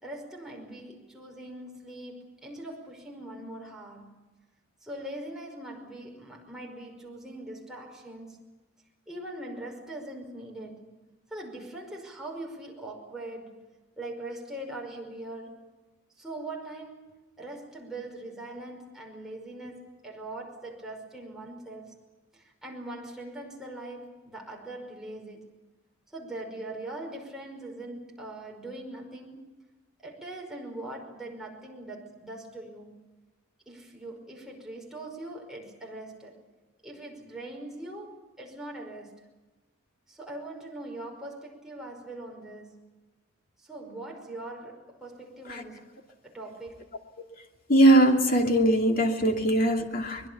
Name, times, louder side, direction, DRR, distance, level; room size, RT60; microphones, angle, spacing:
voice 1, 0.0-4.1 4.8-8.4 9.1-10.9 11.3-13.7 14.0-15.6 16.2-22.0 22.3-25.5 26.1-29.5 30.0-33.1 33.7-36.4 36.8-39.3 40.1-42.9 43.6-45.9 46.2-46.9, right 1 dB, 5° right, -1 dB, 5.4 m, -41 dB
voice 2, 47.7-50.3, right 1 dB, 45° left, 3 dB, 2.7 m, -21 dB
24.5 x 21.5 x 7.1 m, 1.2 s
head